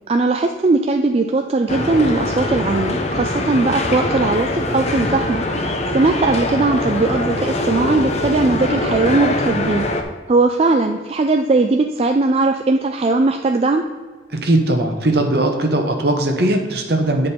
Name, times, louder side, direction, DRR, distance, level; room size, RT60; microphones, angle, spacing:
voice 1, 0.1-5.7 5.9-9.9 10.3-13.8, right 3 dB, 30° right, 4 dB, 0.3 m, -18 dB
sound 1, 1.7-10.0, left 2 dB, 35° left, 0.7 m, -22 dB
voice 2, 14.3-17.3, right 1 dB, 55° right, 3 dB, 1.2 m, -19 dB
8.8 x 5.2 x 4.3 m, 1.4 s
head